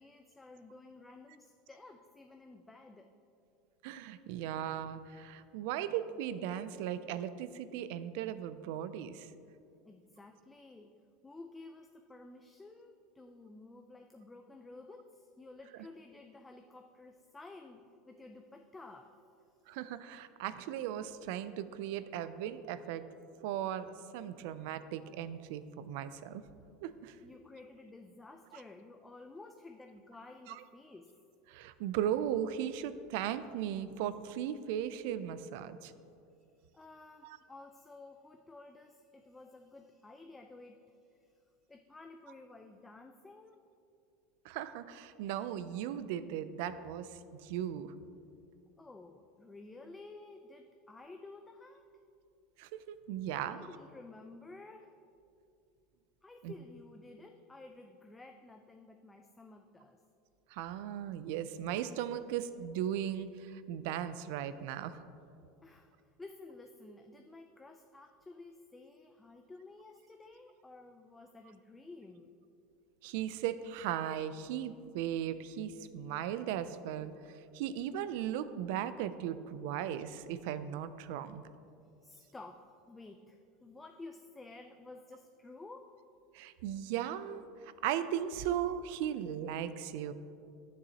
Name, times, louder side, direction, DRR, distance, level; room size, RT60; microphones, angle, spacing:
voice 1, 0.0-3.1 9.8-11.0 11.2-19.2 27.2-31.1 36.7-40.8 41.1-41.3 41.7-43.6 48.8-51.8 53.3-54.9 56.2-60.0 65.6-72.4 82.0-85.9, left 2 dB, 10° left, 4 dB, 0.3 m, -53 dB
voice 2, 3.8-9.3 19.7-23.0 23.4-26.4 26.8-27.2 30.5-30.6 31.5-35.9 37.2-37.4 44.4-47.9 52.6-53.6 56.4-56.5 60.5-65.0 73.0-77.1 77.5-81.4 86.3-90.1, right 10 dB, 70° right, 13 dB, 0.3 m, -37 dB
10.5 x 6.9 x 2.9 m, 2.5 s
supercardioid pair, 150°, 0 cm